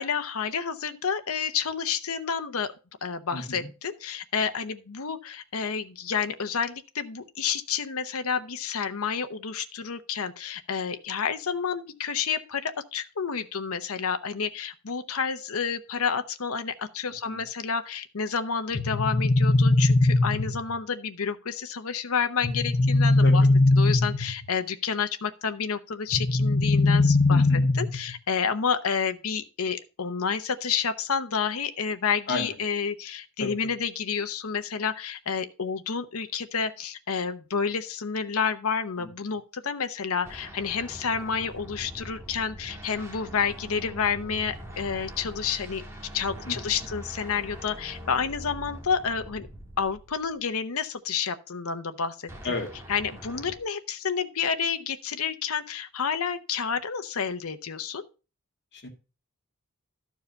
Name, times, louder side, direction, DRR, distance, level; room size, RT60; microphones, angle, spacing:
voice 1, 0.0-2.7 3.0-23.4 23.8-27.4 27.7-45.8 46.1-49.5 49.8-52.3 52.9-58.0, left 6 dB, 80° left, 0.8 m, -29 dB
voice 2, 3.3-3.7 17.3-17.4 23.2-23.4 27.3-27.7 32.3-32.6 33.4-33.5 39.0-39.1 46.5-46.8 52.4-52.7 58.8-58.9, left 3 dB, 50° left, 1.9 m, -32 dB
sound 1, 18.7-20.8 22.4-24.5 26.1-28.1, left 2 dB, 35° left, 0.7 m, -21 dB
sound 2, 40.2-50.5 52.3-53.6, right 1 dB, 10° right, 1.7 m, -43 dB
12.5 x 4.7 x 5.2 m
head